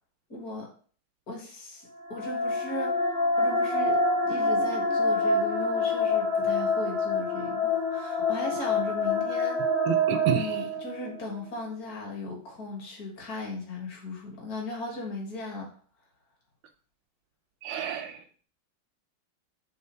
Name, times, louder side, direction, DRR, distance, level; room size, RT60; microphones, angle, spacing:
voice 1, 0.3-0.7 1.3-9.7 10.3-15.7, left 2 dB, 55° left, 0 dB, 2.1 m, -37 dB
sound 1, 2.0-11.2, left 2 dB, 85° left, 3.7 m, -26 dB
voice 2, 9.9-10.6 17.6-18.2, right 7 dB, 85° right, 5 dB, 1.3 m, -30 dB
6.1 x 3.6 x 4.5 m, 0.43 s
omnidirectional pair, 2.0 m